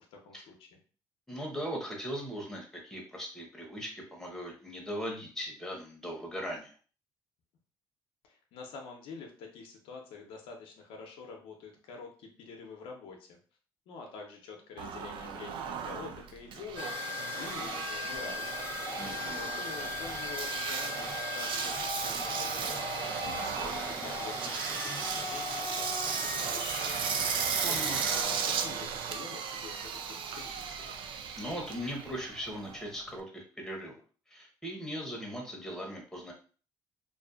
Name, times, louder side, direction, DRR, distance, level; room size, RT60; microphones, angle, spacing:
voice 1, 0.1-0.7 8.3-13.4 13.9-18.5 19.3-27.1 27.7-31.0, left 4 dB, 80° left, 1 dB, 0.6 m, -47 dB
voice 2, 1.3-6.7 19.0-19.4 27.6-28.0 31.4-34.0 34.3-36.3, equal, 5° left, 0 dB, 0.9 m, -39 dB
Engine, 14.8-33.2, right 6 dB, 60° right, 0.4 m, -35 dB
sound 1, 16.8-28.2, left 5 dB, 25° left, 0.6 m, -39 dB
2.5 x 2.3 x 2.3 m, 0.40 s
supercardioid pair, 75°, 10 cm